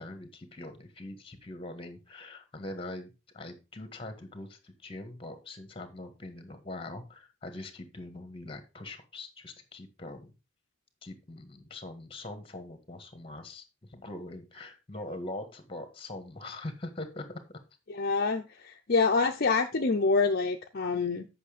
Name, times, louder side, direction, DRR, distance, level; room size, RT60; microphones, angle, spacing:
voice 1, 0.0-10.3 11.0-17.4, left 2 dB, 25° left, 1.5 m, -42 dB
voice 2, 17.9-21.3, left 4 dB, 50° left, 0.7 m, -26 dB
8.2 x 5.8 x 5.0 m
head